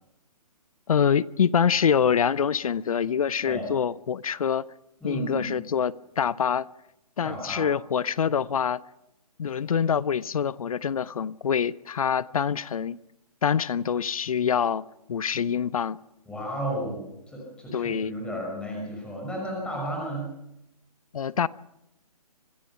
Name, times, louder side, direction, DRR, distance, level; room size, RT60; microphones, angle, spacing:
voice 1, 0.9-4.7 5.0-6.7 7.2-8.8 9.4-13.0 13.4-16.0 17.7-18.1 21.1-21.5, left 7 dB, 65° left, 0.7 m, -25 dB
voice 2, 5.0-5.5 7.2-7.7 16.3-20.3, right 1 dB, 5° left, 5.8 m, -33 dB
26.0 x 17.5 x 5.8 m
hypercardioid pair, 145°, 20 cm